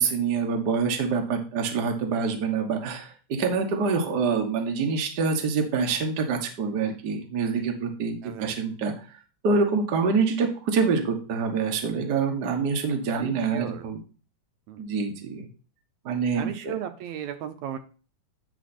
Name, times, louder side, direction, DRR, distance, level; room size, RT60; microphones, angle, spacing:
voice 1, 0.0-9.1 9.4-14.0 14.8-15.5 16.0-16.7, right 5 dB, 55° right, 3 dB, 1.2 m, -26 dB
voice 2, 8.2-8.6 13.1-13.9 14.7-14.8 16.3-17.8, right 10 dB, 75° right, 8 dB, 1.9 m, -35 dB
9.3 x 4.5 x 4.2 m, 0.38 s
omnidirectional pair, 3.5 m